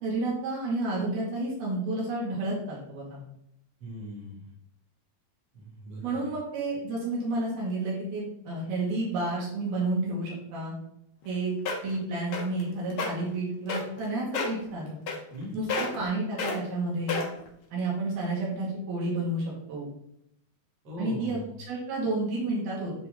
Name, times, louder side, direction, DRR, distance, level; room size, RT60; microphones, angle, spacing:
voice 1, 0.0-3.2 6.0-10.7 11.3-11.5 11.8-15.0 15.5-17.2 17.7-19.9 21.0-21.4 21.7-22.9, right 2 dB, 75° right, -5 dB, 4.1 m, -30 dB
voice 2, 3.8-4.5 5.5-6.2 15.3-15.6 20.8-21.5, equal, 40° right, -5 dB, 3.3 m, -39 dB
sound 1, 11.2-11.3 11.7-12.0 12.3-12.6 12.9-13.1 13.7-14.0 14.3-14.6 15.1-15.4 15.7-16.1 16.4-16.6 17.1-17.5 18.1-18.2, left 4 dB, 70° left, 1.2 m, -30 dB
10.5 x 4.1 x 3.9 m, 0.74 s
omnidirectional pair, 4.5 m